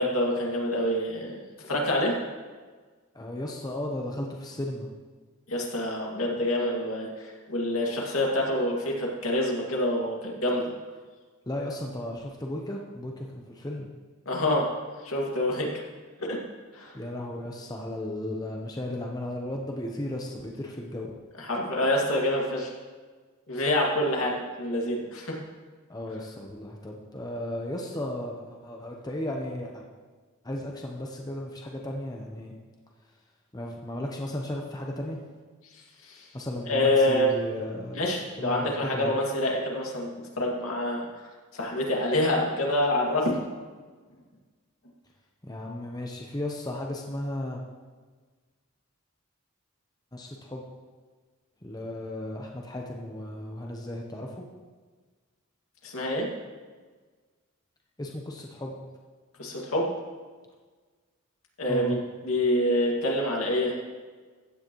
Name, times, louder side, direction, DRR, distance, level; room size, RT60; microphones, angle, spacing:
voice 1, 0.0-2.1 5.5-10.7 14.3-14.7 15.0-15.7 16.2-16.4 16.7-17.0 21.4-22.7 23.5-25.4 36.0-36.3 36.7-37.4 37.9-41.1 41.5-43.4 55.8-56.3 59.4-59.9 61.6-62.0 62.2-63.8, left 1 dB, 75° left, -2 dB, 2.2 m, -26 dB
voice 2, 3.1-4.9 11.5-13.9 16.9-21.1 25.9-29.8 30.4-32.5 33.5-35.2 36.3-38.0 38.4-39.1 45.4-47.6 50.1-50.6 51.6-54.5 58.0-58.8 61.7-62.0, left 1 dB, 20° left, 0 dB, 0.9 m, -35 dB
15.5 x 9.4 x 3.1 m, 1.4 s
head